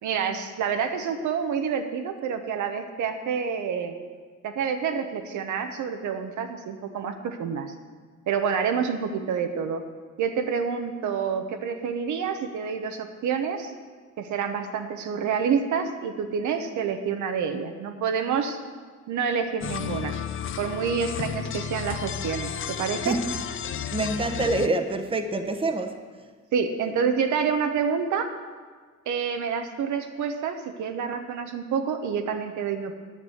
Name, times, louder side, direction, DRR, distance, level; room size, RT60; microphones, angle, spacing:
voice 1, 0.0-3.9 4.4-7.7 8.3-9.8 10.2-13.7 14.2-18.6 19.1-20.2 20.6-23.2 26.5-28.3 29.1-33.0, right 6 dB, 75° right, 6 dB, 0.9 m, -28 dB
sound 1, 19.6-24.7, left 9 dB, 45° left, 0.5 m, -32 dB
voice 2, 23.9-26.0, right 2 dB, 20° right, 6 dB, 0.9 m, -26 dB
9.3 x 6.1 x 8.0 m, 1.6 s
cardioid pair, 90°, 30 cm